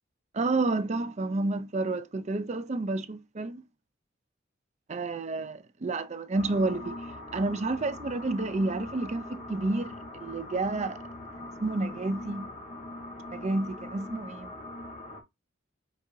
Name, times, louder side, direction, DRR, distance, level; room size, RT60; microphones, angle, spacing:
voice 1, 0.3-3.6 4.9-6.9 7.3-11.0 11.6-12.5 13.3-14.5, right 2 dB, 35° right, 0.5 m, -30 dB
sound 1, 6.3-15.2, left 1 dB, 35° left, 1.3 m, -42 dB
5.2 x 3.6 x 2.7 m
head